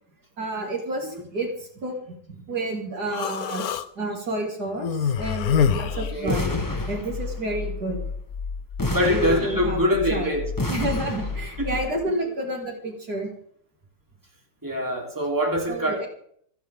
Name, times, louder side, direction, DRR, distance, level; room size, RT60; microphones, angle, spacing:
voice 1, 0.4-1.9 2.3-8.0 9.1-9.8 10.1-10.4 10.7-13.3 15.7-16.1, right 1 dB, 60° right, 0 dB, 3.2 m, -30 dB
Human voice, 3.1-3.9 4.8-6.8, left 8 dB, 65° left, 1.2 m, -25 dB
sound 1, 5.8-12.0, left 5 dB, 40° left, 5.6 m, -33 dB
voice 2, 5.9-6.4 8.9-10.4 11.6-11.7 14.6-16.1, equal, 10° right, -1 dB, 3.3 m, -24 dB
sound 2, 6.3-7.5 8.8-10.1 10.6-11.7, left 1 dB, 15° left, 1.1 m, -30 dB
28.5 x 9.6 x 3.6 m, 0.65 s
omnidirectional pair, 1.9 m